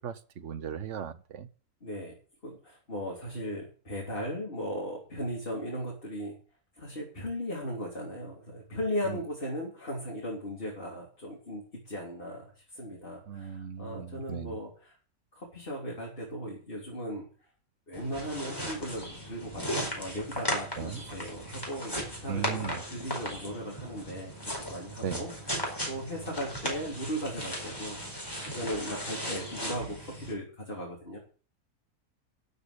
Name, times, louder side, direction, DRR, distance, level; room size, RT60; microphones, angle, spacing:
voice 1, 0.0-1.5 9.0-9.2 13.3-14.6 20.8-21.0 22.3-22.8 25.0-25.2, right 8 dB, 55° right, 12 dB, 1.2 m, -37 dB
voice 2, 1.8-2.2 2.4-6.4 6.8-15.0 15.3-17.3 17.9-31.2, equal, 35° left, -3 dB, 3.7 m, -37 dB
sound 1, 17.9-30.3, equal, 15° left, 4.5 m, -37 dB
12.5 x 6.7 x 8.4 m, 0.40 s
omnidirectional pair, 1.6 m